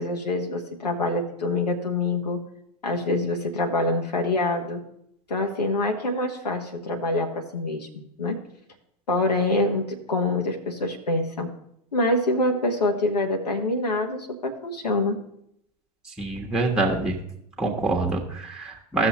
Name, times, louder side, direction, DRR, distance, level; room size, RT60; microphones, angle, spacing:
voice 1, 0.0-2.4 2.8-4.8 5.3-7.9 8.2-8.4 9.1-11.5 11.9-15.2, left 2 dB, 80° left, 2 dB, 1.2 m, -25 dB
voice 2, 16.2-17.2 17.6-19.1, right 2 dB, 5° right, 1 dB, 1.3 m, -25 dB
15.5 x 6.3 x 3.0 m, 0.75 s
figure-of-eight pair, 85°, 20 cm